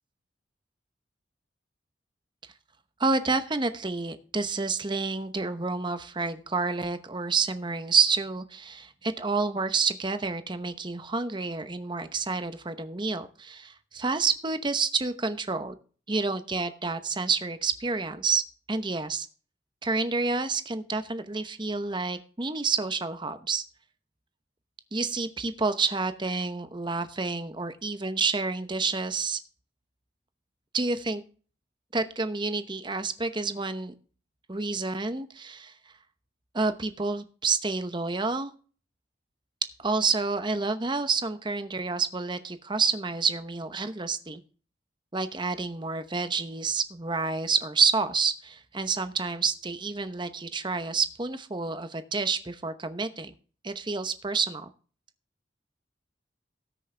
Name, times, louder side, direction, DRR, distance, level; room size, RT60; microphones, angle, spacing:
voice 1, 3.0-15.8 16.1-18.4 18.7-19.3 19.8-23.6 24.9-29.4 30.7-31.2 31.9-33.9 34.5-35.7 36.5-38.5 39.8-44.4 45.1-53.3 53.6-54.7, right 4 dB, 25° right, 10 dB, 0.9 m, -29 dB
18.5 x 6.4 x 3.4 m, 0.40 s
head